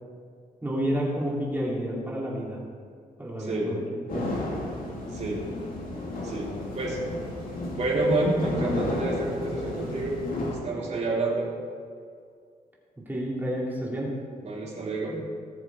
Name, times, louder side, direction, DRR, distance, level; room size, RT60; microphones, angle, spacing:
voice 1, 0.6-2.6 3.2-3.8 4.1-4.4 13.0-14.2, equal, 10° right, -5 dB, 3.1 m, -30 dB
voice 2, 3.4-3.7 5.1-5.4 6.2-7.0 7.7-10.2 10.6-11.5 14.4-15.2, right 2 dB, 50° right, -4 dB, 3.7 m, -28 dB
sound 1, 4.1-10.6, left 2 dB, 70° left, 2.8 m, -33 dB
19.0 x 7.2 x 4.7 m, 2.2 s
wide cardioid pair, 140°, 15 cm